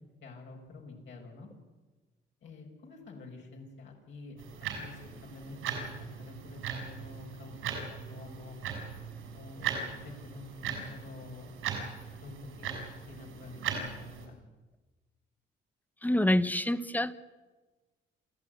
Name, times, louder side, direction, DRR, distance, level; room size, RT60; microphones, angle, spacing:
voice 1, 0.2-1.5 2.4-8.6 9.3-11.5 12.2-14.4, left 3 dB, 65° left, 0 dB, 6.1 m, -48 dB
sound 1, 4.4-14.3, right 7 dB, 85° right, 6.1 m, -39 dB
voice 2, 16.0-17.1, left 1 dB, 10° left, 14 dB, 1.1 m, -26 dB
28.5 x 14.0 x 9.5 m, 1.3 s
cardioid pair, 90°, 20 cm